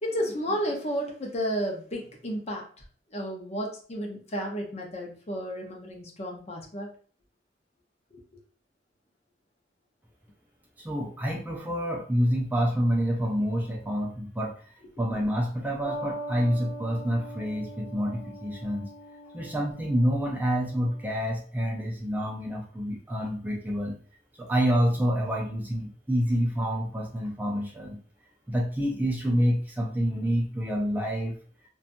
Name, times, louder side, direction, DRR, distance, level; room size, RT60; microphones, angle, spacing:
voice 1, 0.0-2.8 3.1-6.9 8.1-8.2, equal, 35° left, 1 dB, 0.6 m, -32 dB
voice 2, 10.8-14.5 15.0-18.9 19.3-24.0 24.3-28.0 28.5-31.4, equal, 10° right, -1 dB, 0.3 m, -27 dB
sound 1, 15.8-21.0, right 1 dB, 30° right, 1.0 m, -41 dB
2.7 x 2.3 x 2.5 m, 0.43 s
head